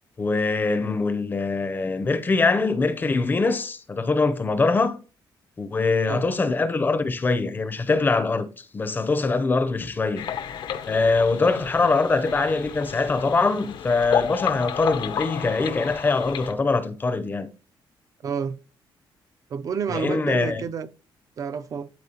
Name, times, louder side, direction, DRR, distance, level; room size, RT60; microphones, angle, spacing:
voice 1, 0.2-5.0 5.6-10.3 10.9-17.5 19.9-20.6, left 3 dB, 20° left, 0.5 m, -23 dB
sound 1, 10.2-16.5, left 9 dB, 65° left, 0.6 m, -32 dB
voice 2, 18.2-18.6 19.5-20.9 21.4-21.9, right 6 dB, 40° right, 0.4 m, -29 dB
12.0 x 4.2 x 2.8 m
cardioid pair, 160°, 9 cm